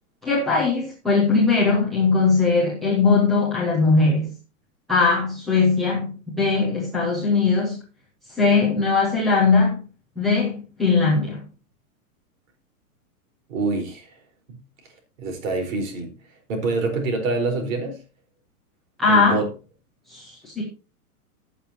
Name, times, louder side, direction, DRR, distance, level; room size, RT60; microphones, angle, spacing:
voice 1, 0.2-4.3 4.9-7.8 8.3-9.8 10.2-11.4 19.0-19.4 20.1-20.6, left 4 dB, ahead, 0.4 m, -20 dB
voice 2, 13.5-14.1 14.5-14.6 15.2-16.2 16.5-18.0 19.1-19.5, right 3 dB, 60° right, 4.5 m, -26 dB
16.0 x 7.1 x 2.9 m
hypercardioid pair, 165°, 45 cm